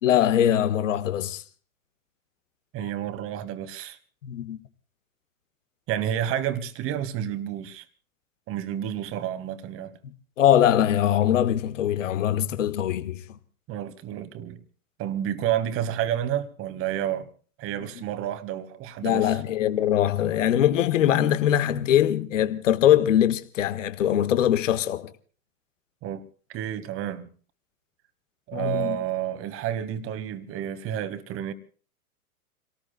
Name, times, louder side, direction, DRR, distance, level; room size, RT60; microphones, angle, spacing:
voice 1, 0.0-1.4 4.2-4.6 10.0-13.4 19.0-25.1 28.5-29.0, left 11 dB, 60° left, 1.5 m, -22 dB
voice 2, 2.7-4.0 5.9-7.8 8.5-10.0 13.7-14.6 15.0-17.3 17.6-19.4 26.0-26.2 26.5-27.3 28.5-31.5, right 10 dB, 30° right, 1.7 m, -30 dB
29.5 x 18.5 x 2.2 m
figure-of-eight pair, 100°, 43 cm